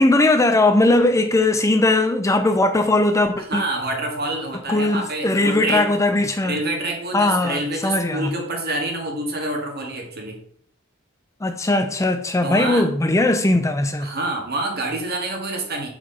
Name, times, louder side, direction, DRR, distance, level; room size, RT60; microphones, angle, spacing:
voice 1, 0.0-3.6 4.7-6.6 7.1-8.3 11.4-14.1, left 2 dB, 15° left, 0.5 m, -19 dB
voice 2, 3.4-5.9 6.4-10.4 12.4-12.8 14.0-15.9, right 2 dB, 50° right, 1.9 m, -27 dB
6.0 x 4.8 x 5.7 m
head